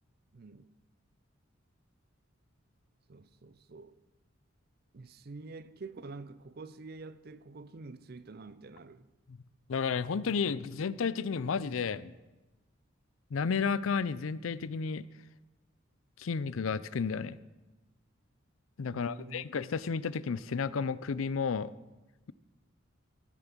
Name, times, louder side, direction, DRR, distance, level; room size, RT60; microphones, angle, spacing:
voice 1, 0.3-0.7 3.1-4.0 4.9-9.1 18.9-19.4, right 3 dB, 50° right, 0.5 m, -47 dB
voice 2, 9.7-12.1 13.3-15.0 16.2-17.4 18.8-21.7, left 5 dB, 85° left, 0.5 m, -32 dB
13.5 x 8.9 x 6.1 m
head